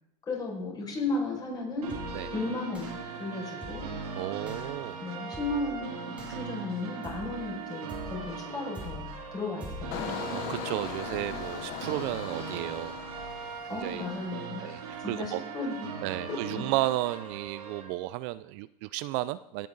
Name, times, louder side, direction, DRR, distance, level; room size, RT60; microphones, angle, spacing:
voice 1, 0.3-1.9 2.3-3.9 5.0-5.9 6.3-10.2 13.7-16.0 16.5-16.6, left 2 dB, 20° left, -2 dB, 5.4 m, -35 dB
sound 1, 1.8-17.8, right 5 dB, 90° right, 3.4 m, -39 dB
sound 2, 1.9-2.3 2.7-3.1 3.6-4.0 4.5-4.7 5.3-5.7 6.2-6.6 7.0-7.5 7.9-8.3 8.7-9.2 9.6-10.0, left 2 dB, 5° right, 3.2 m, -43 dB
voice 2, 4.1-5.0 10.2-12.9 13.7-14.1 14.3-15.4 16.0-19.7, right 17 dB, 50° right, 16 dB, 0.4 m, -33 dB
Engine, 9.9-14.6 14.9-15.3, left 12 dB, 55° left, 1.0 m, -40 dB
17.5 x 9.2 x 3.9 m, 0.84 s
supercardioid pair, 130°, 19 cm